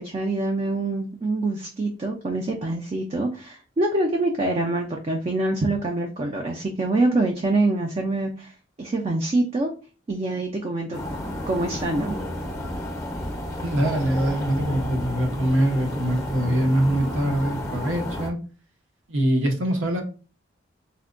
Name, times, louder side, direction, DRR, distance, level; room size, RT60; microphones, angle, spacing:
voice 1, 0.0-8.5 8.8-9.7 10.1-11.0 11.5-12.2, right 2 dB, 30° right, 2 dB, 0.3 m, -25 dB
sound 1, 10.9-18.3, left 1 dB, 15° left, 0.6 m, -31 dB
voice 2, 13.6-18.4 19.1-20.0, right 1 dB, 85° right, 3 dB, 0.8 m, -23 dB
4.2 x 2.1 x 2.4 m, 0.35 s
head